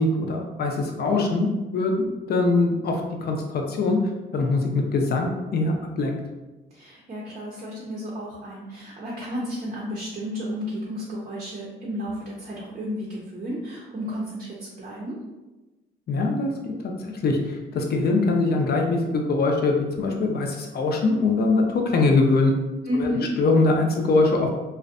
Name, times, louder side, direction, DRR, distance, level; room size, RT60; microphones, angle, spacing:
voice 1, 0.0-1.5 1.7-4.0 4.3-6.2 16.1-22.5 23.0-23.1 23.4-24.5, left 3 dB, 55° left, 2 dB, 0.5 m, -22 dB
voice 2, 6.7-15.2 22.9-23.3, equal, 40° right, -5 dB, 0.5 m, -32 dB
2.4 x 2.1 x 2.5 m, 1.1 s
cardioid pair, 90°, 20 cm